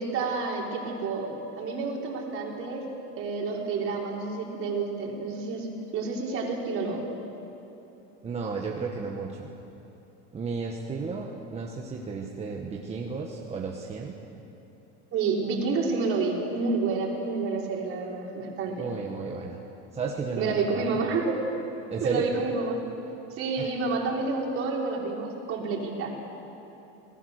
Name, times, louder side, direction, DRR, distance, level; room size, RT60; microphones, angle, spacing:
voice 1, 0.0-2.8 3.2-5.7 5.9-7.0 15.1-18.9 20.4-21.4 22.0-22.8 23.3-26.1, right 4 dB, 40° right, -1 dB, 4.3 m, -29 dB
voice 2, 8.2-9.5 10.3-14.2 18.8-19.6 19.9-21.0 21.9-22.3 23.6-23.7, right 4 dB, 20° right, -1 dB, 1.6 m, -33 dB
27.0 x 19.0 x 6.7 m, 3.0 s
supercardioid pair, 145°, 32 cm